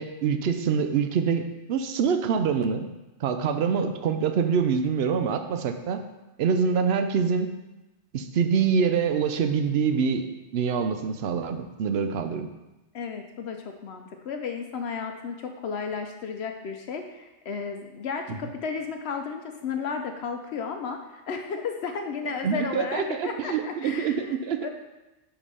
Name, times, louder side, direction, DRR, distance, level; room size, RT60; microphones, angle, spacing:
voice 1, 0.0-2.9 3.2-6.0 6.4-7.5 8.1-10.2 10.5-12.5 22.4-24.7, right 6 dB, 65° right, 8 dB, 0.8 m, -25 dB
voice 2, 12.9-24.3 24.6-24.7, left 5 dB, 65° left, 5 dB, 0.8 m, -33 dB
5.1 x 5.1 x 5.4 m, 1.0 s
omnidirectional pair, 1.2 m